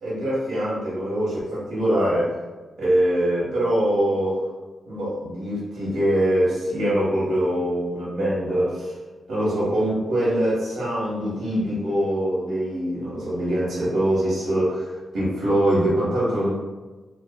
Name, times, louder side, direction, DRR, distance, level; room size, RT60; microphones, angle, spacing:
voice 1, 0.0-2.3 2.8-4.4 4.9-8.9 9.3-16.5, right 1 dB, 80° right, -8 dB, 1.1 m, -23 dB
2.4 x 2.3 x 2.3 m, 1.2 s
cardioid pair, 90°, 0 cm